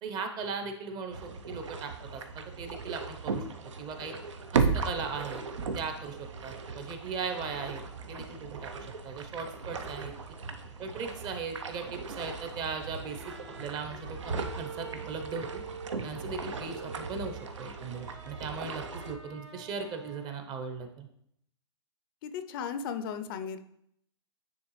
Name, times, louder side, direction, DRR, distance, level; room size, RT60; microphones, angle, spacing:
voice 1, 0.0-3.4 3.8-4.1 4.5-5.4 5.7-10.1 10.8-13.3 13.6-15.6 16.0-21.1, right 5 dB, 30° right, 6 dB, 0.7 m, -38 dB
sound 1, 1.1-19.1, right 5 dB, 85° right, 0.6 m, -37 dB
sound 2, 13.0-20.5, right 5 dB, 70° right, 1.2 m, -46 dB
voice 2, 22.2-23.6, left 7 dB, 50° left, 10 dB, 0.5 m, -36 dB
9.5 x 3.3 x 3.1 m, 0.72 s
hypercardioid pair, 125°, 15 cm